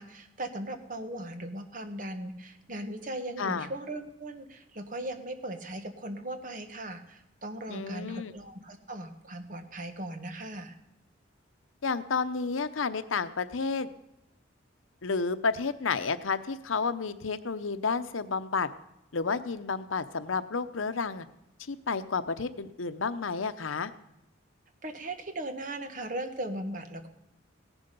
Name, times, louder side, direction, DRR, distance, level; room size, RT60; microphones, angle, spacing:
voice 1, 0.0-10.7 24.8-27.1, right 1 dB, 40° right, 7 dB, 1.3 m, -38 dB
voice 2, 3.4-3.7 7.7-8.3 11.8-13.9 15.0-18.7 19.1-21.3 21.6-23.9, left 4 dB, 90° left, 12 dB, 0.8 m, -31 dB
16.5 x 11.0 x 5.3 m, 0.88 s
head